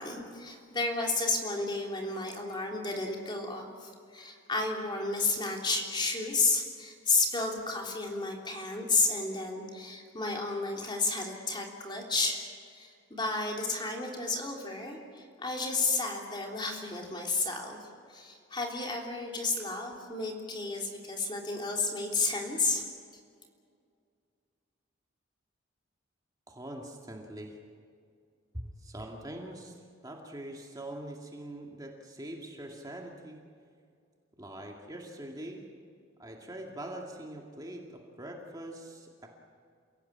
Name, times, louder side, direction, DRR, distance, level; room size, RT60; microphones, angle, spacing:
voice 1, 0.0-12.4 12.7-17.8 18.1-22.8, left 3 dB, 25° left, 0 dB, 3.4 m, -32 dB
voice 2, 26.5-27.6 28.5-29.8 30.0-33.4 34.4-35.6 36.2-39.3, right 1 dB, 20° right, 0 dB, 2.3 m, -43 dB
28.5 x 17.0 x 8.8 m, 2.2 s
head